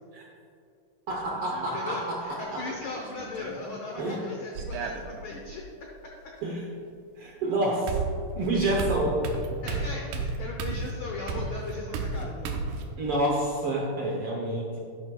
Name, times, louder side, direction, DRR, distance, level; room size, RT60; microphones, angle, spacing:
voice 1, 1.1-2.6 4.0-4.2 6.4-6.6 7.2-8.0 8.4-9.2 13.0-14.8, right 1 dB, 70° right, -2 dB, 1.4 m, -28 dB
sound 1, 1.1-1.7 3.0-3.6 4.6-5.6 7.3-7.4 7.9-12.9, right 4 dB, 90° right, 2.3 m, -33 dB
voice 2, 1.7-5.6 9.6-12.6, left 3 dB, 85° left, -1 dB, 1.1 m, -37 dB
11.0 x 10.5 x 2.3 m, 2.5 s
omnidirectional pair, 3.6 m